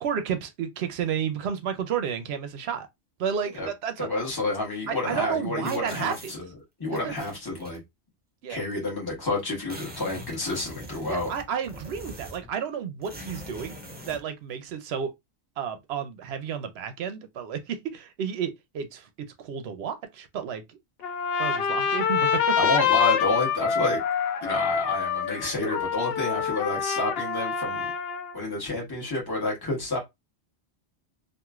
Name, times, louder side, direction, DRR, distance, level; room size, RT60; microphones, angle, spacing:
voice 1, 0.0-2.9 3.2-4.1 4.9-6.3 7.0-7.1 8.4-8.6 11.1-15.1 15.6-19.1 19.4-20.8 21.4-22.6, right 7 dB, 70° right, 0.8 m, -31 dB
voice 2, 4.0-6.5 6.8-7.8 8.5-11.3 22.6-24.0 24.4-27.9 28.3-30.0, left 2 dB, 20° left, 1.3 m, -29 dB
sound 1, 5.6-6.4 6.9-7.8 8.7-8.8 9.0-9.1 9.4-12.5 13.0-14.2, equal, 10° right, 0.5 m, -43 dB
Trumpet, 21.0-28.4, left 7 dB, 65° left, 0.7 m, -26 dB
3.0 x 2.5 x 2.3 m
omnidirectional pair, 1.2 m